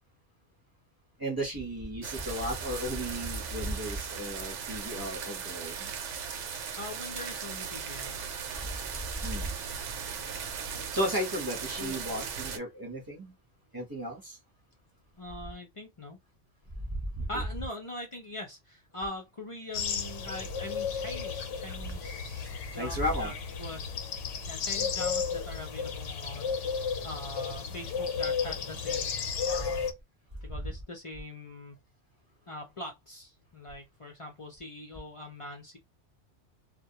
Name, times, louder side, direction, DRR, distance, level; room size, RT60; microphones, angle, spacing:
voice 1, 1.2-5.9 9.2-9.5 10.9-13.3 13.7-14.4 17.1-17.3 22.7-23.3 30.5-30.6, equal, 20° right, 0.8 m, -34 dB
sound 1, 2.0-12.6, right 6 dB, 80° right, 0.9 m, -38 dB
voice 2, 6.8-8.2 11.8-12.0 15.1-16.2 17.3-29.1 29.5-29.9 30.4-31.8 32.5-35.8, left 1 dB, 45° left, 0.4 m, -42 dB
sound 2, 19.7-29.9, left 6 dB, 80° left, 0.9 m, -33 dB
2.2 x 2.1 x 2.7 m
omnidirectional pair, 1.2 m